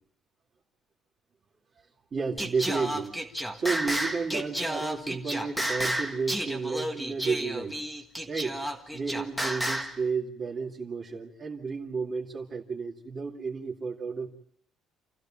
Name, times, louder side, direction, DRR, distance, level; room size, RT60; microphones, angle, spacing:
voice 1, 2.1-3.2 3.5-7.8 8.3-8.6 8.9-14.3, right 5 dB, 30° right, -1 dB, 2.5 m, -32 dB
Singing, 2.4-10.0, equal, ahead, 1.7 m, -31 dB
28.5 x 15.0 x 7.5 m, 0.73 s
cardioid pair, 165°, 0 cm